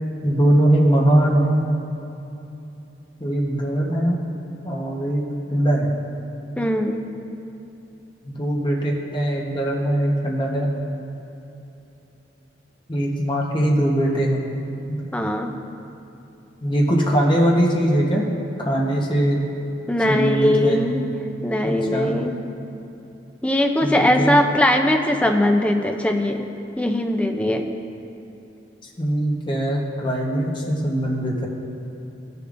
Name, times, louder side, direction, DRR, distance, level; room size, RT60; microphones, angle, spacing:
voice 1, 0.2-1.6 3.2-4.2 4.6-5.2 5.5-5.9 8.2-10.7 12.9-14.4 14.9-15.0 16.6-18.2 18.6-19.4 20.1-20.8 21.6-22.1 23.8-24.4 29.0-31.5, right 1 dB, 25° left, -2 dB, 1.0 m, -21 dB
voice 2, 6.6-7.0 15.1-15.6 19.9-21.1 21.4-22.4 23.4-26.5 26.8-27.6, left 1 dB, 5° left, 4 dB, 0.4 m, -20 dB
16.0 x 6.8 x 2.6 m, 2.9 s
head